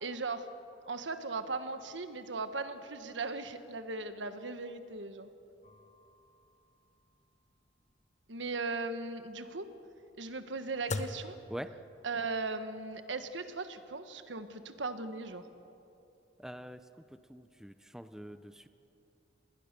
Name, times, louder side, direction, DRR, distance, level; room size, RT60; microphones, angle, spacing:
voice 1, 0.0-0.5 0.9-5.3 8.3-9.7 10.2-11.4 12.0-15.4, right 3 dB, 75° right, 9 dB, 1.5 m, -38 dB
sound 1, 5.6-12.3, left 3 dB, 40° left, 1.0 m, -45 dB
voice 2, 16.4-16.8 17.3-18.7, equal, 5° right, 10 dB, 0.6 m, -44 dB
28.0 x 20.5 x 6.8 m, 2.7 s
head